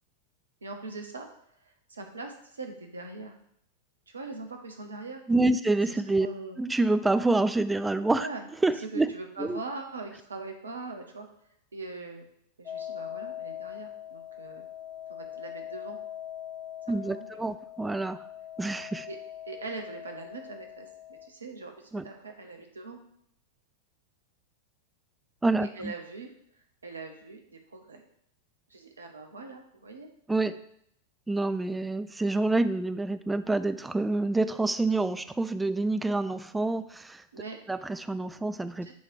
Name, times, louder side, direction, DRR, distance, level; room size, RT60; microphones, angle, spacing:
voice 1, 0.6-1.3 1.6-3.3 4.1-5.2 5.9-6.6 8.2-8.5 8.9-11.3 11.7-12.3 12.6-14.6 15.1-16.0 16.9-17.3 19.1-19.2 19.4-23.0 25.6-28.0 28.7-30.1 37.3-37.6 38.8-38.9, right 3 dB, 75° right, 4 dB, 1.0 m, -42 dB
voice 2, 5.3-6.3 6.6-8.3 8.6-9.1 9.4-9.6 16.9-18.2 18.6-19.1 21.9-22.1 25.4-25.9 30.3-30.6 31.3-37.2 37.7-38.9, right 2 dB, 10° right, 12 dB, 0.3 m, -27 dB
sound 1, 12.6-21.3, left 11 dB, 35° left, 1.4 m, -42 dB
8.4 x 3.2 x 4.8 m, 0.72 s
figure-of-eight pair, 90°, 0 cm